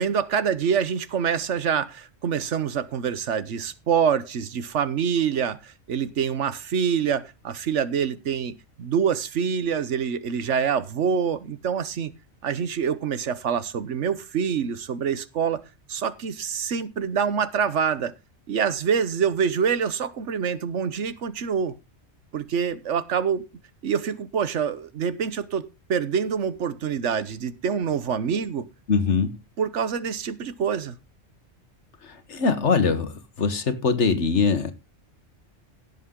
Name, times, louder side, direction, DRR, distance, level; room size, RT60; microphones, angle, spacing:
voice 1, 0.0-12.1 12.4-15.6 15.9-18.1 18.5-21.7 22.3-23.5 23.8-28.7 29.6-31.0, right 7 dB, 85° right, 1.3 m, -26 dB
voice 2, 28.9-29.4 32.0-34.7, left 5 dB, 75° left, 1.6 m, -23 dB
17.0 x 7.4 x 3.8 m
omnidirectional pair, 1.2 m